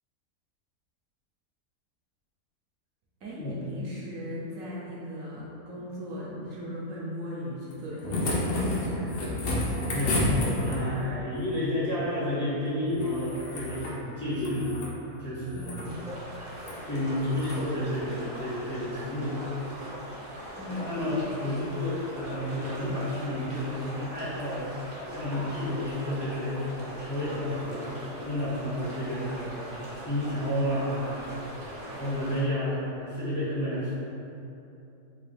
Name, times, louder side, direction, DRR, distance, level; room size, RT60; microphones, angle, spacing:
voice 1, 3.2-9.6 15.5-15.9 20.6-20.9, equal, 70° right, -6 dB, 1.0 m, -38 dB
sound 1, 7.7-11.0 12.9-14.0 14.3-14.9 15.5-15.9 16.6-16.8 17.3-17.6 19.0-19.1, left 1 dB, 65° left, 0.6 m, -30 dB
voice 2, 9.8-14.7 15.2-15.8 16.9-19.5 20.8-24.7 25.1-33.9, left 1 dB, 20° left, -12 dB, 0.6 m, -31 dB
sound 2, 15.8-32.4, equal, 45° right, 0.6 m, -41 dB
3.8 x 2.3 x 3.3 m, 2.8 s
omnidirectional pair, 1.6 m